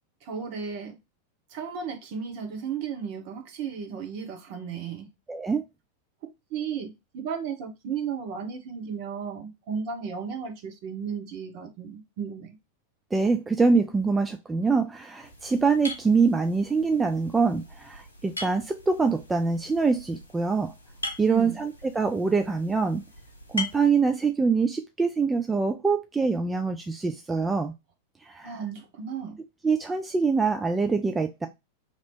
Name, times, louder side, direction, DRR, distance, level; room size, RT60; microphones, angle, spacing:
voice 1, 0.2-1.0 1.5-5.1 6.5-12.5 21.2-21.6 28.4-29.4, right 6 dB, 45° right, 1.0 m, -34 dB
voice 2, 5.3-5.6 13.1-20.7 21.2-23.0 23.5-27.7 28.2-28.5 29.6-31.5, right 4 dB, 10° right, 0.3 m, -24 dB
sound 1, 15.2-23.9, left 2 dB, 80° left, 0.7 m, -41 dB
2.9 x 2.9 x 4.2 m
figure-of-eight pair, 90°, 0 cm